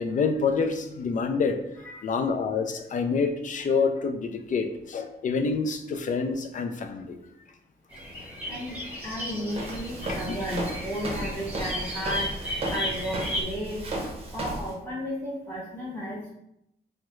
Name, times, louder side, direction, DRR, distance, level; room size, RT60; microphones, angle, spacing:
voice 1, 0.0-1.6 2.0-7.2 8.4-8.5 10.0-10.4 11.2-11.3, left 5 dB, 45° left, 7 dB, 0.4 m, -27 dB
sound 1, 7.9-13.4, equal, 10° right, 1.1 m, -35 dB
voice 2, 9.0-13.8 14.3-16.3, equal, 10° left, -8 dB, 0.9 m, -34 dB
Walk footsteps, 9.5-14.7, right 1 dB, 35° right, 0.7 m, -34 dB
3.4 x 2.1 x 3.0 m, 0.81 s
wide cardioid pair, 115°, 18 cm